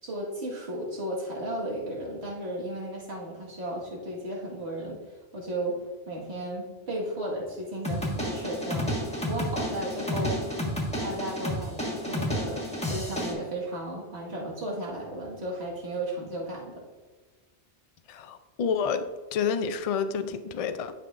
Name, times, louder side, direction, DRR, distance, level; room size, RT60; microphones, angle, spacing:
voice 1, 0.0-8.9 9.3-10.4 11.0-16.8, right 1 dB, 70° right, -4 dB, 2.0 m, -34 dB
sound 1, 7.8-13.3, equal, 5° left, 1.4 m, -31 dB
voice 2, 18.1-19.0 19.3-20.9, left 6 dB, 60° left, 8 dB, 0.3 m, -29 dB
11.0 x 5.8 x 2.5 m, 1.3 s
omnidirectional pair, 1.2 m